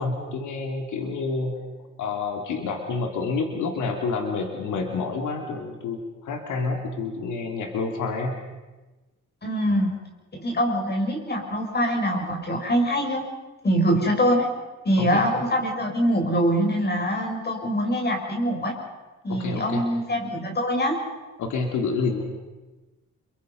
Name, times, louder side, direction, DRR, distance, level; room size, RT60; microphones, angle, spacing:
voice 1, 0.0-1.6 2.0-8.3 15.0-15.2 19.3-19.8 21.4-22.2, left 4 dB, 80° left, 3 dB, 3.2 m, -28 dB
voice 2, 9.4-9.9 10.3-13.2 13.6-14.5 14.8-18.7 19.2-21.0, equal, 35° left, 2 dB, 6.2 m, -24 dB
28.5 x 23.5 x 5.5 m, 1.2 s
cardioid pair, 90°, 30 cm